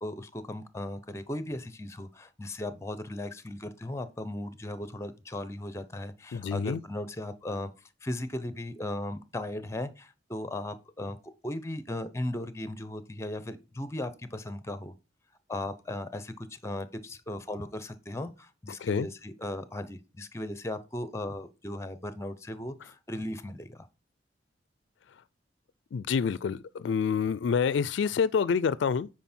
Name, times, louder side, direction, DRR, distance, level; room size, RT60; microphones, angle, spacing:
voice 1, 0.0-7.7 8.0-11.2 11.4-14.9 15.5-23.9, left 1 dB, 15° left, 0.7 m, -37 dB
voice 2, 6.3-6.8 18.8-19.1 25.9-29.1, left 6 dB, 75° left, 0.4 m, -27 dB
9.1 x 4.8 x 4.3 m
head